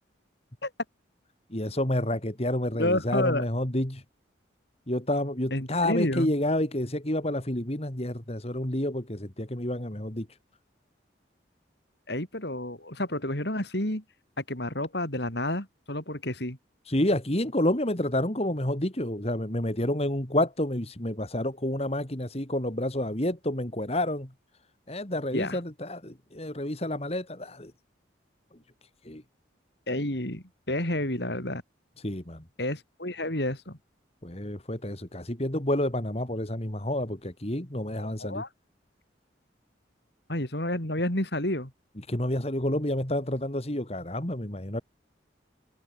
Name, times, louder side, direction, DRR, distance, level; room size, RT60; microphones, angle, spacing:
voice 1, 1.5-4.0 4.9-10.3 16.9-24.3 24.9-27.7 29.0-29.2 32.0-32.4 34.2-38.4 42.1-44.8, left 1 dB, 30° left, 2.5 m, -29 dB
voice 2, 2.8-3.4 5.5-6.3 12.1-14.0 14.4-16.6 25.3-25.6 29.9-31.6 32.6-33.8 38.0-38.5 40.3-41.7, left 1 dB, 60° left, 4.8 m, -30 dB
head